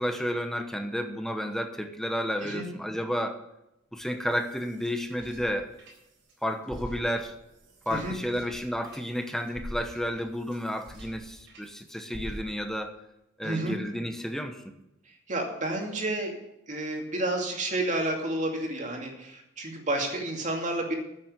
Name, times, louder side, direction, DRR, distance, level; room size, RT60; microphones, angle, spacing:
voice 1, 0.0-3.4 3.9-5.7 6.4-7.4 7.9-13.0 13.4-14.7, equal, ahead, 6 dB, 1.0 m, -31 dB
sound 1, 4.0-6.3 6.6-11.7 12.1-12.8, equal, 75° right, 4.0 m, -45 dB
voice 2, 13.4-13.8 15.3-16.4 16.7-20.9, right 1 dB, 40° right, 2 dB, 2.4 m, -30 dB
9.5 x 7.5 x 8.3 m, 0.89 s
head